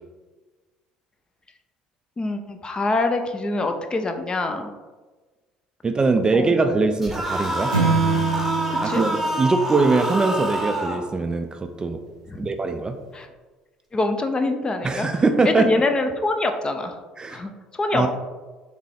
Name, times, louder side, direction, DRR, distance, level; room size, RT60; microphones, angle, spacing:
voice 1, 2.2-4.7 6.3-6.8 8.7-9.0 12.3-12.5 13.1-13.3 13.9-17.0 17.3-18.1, left 2 dB, 25° left, 6 dB, 0.5 m, -25 dB
voice 2, 5.8-7.7 8.8-12.0 12.3-13.0 14.8-15.7 17.2-17.4 17.9-18.1, right 3 dB, 25° right, 7 dB, 0.4 m, -22 dB
sound 1, 7.0-11.0, right 1 dB, 5° right, 1.0 m, -27 dB
sound 2, 7.7-10.4, right 4 dB, 90° right, 0.5 m, -25 dB
3.7 x 3.6 x 3.5 m, 1.3 s
hypercardioid pair, 60°, 3 cm